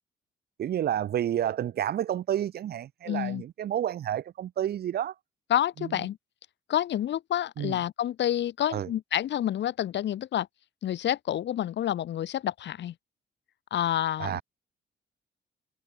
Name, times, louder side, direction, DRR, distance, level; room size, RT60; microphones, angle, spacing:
voice 1, 0.6-5.1 5.8-5.9 7.6-7.8 8.7-8.9 14.2-14.4, right 11 dB, 55° right, 0.5 m, -30 dB
voice 2, 3.1-3.4 5.5-6.2 6.7-10.5 10.8-12.9 13.7-14.4, left 11 dB, 65° left, 1.0 m, -28 dB
cardioid pair, 90°, 20 cm